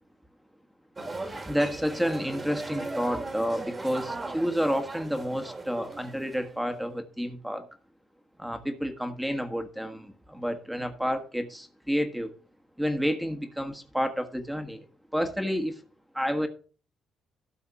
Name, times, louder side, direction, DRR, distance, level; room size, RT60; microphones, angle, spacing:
sound 1, 1.0-6.8, right 2 dB, 25° right, 2.0 m, -38 dB
voice 1, 1.2-7.7 8.4-12.3 12.8-14.8 15.1-15.8 16.1-16.5, equal, 5° right, 1.4 m, -30 dB
12.5 x 4.2 x 7.0 m
cardioid pair, 90°, 0 cm